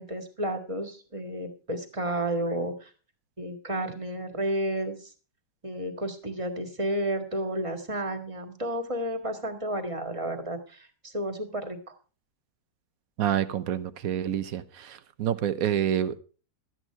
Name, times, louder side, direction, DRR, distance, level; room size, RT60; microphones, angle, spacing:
voice 1, 0.0-2.9 3.4-5.1 5.6-11.9, right 1 dB, 20° right, 1.7 m, -32 dB
voice 2, 13.2-16.2, right 10 dB, 60° right, 1.1 m, -28 dB
12.5 x 9.3 x 4.5 m
omnidirectional pair, 1.9 m